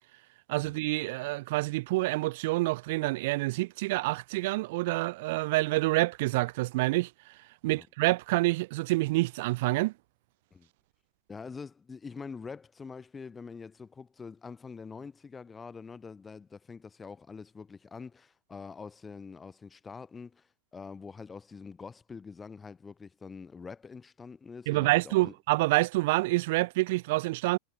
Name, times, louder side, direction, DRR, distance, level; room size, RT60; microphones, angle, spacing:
voice 1, 0.5-7.1 7.6-9.9 24.7-27.6, right 21 dB, 50° right, 0.3 m, -27 dB
voice 2, 11.3-25.3, left 5 dB, 15° left, 3.4 m, -45 dB
figure-of-eight pair, 90°, 0 cm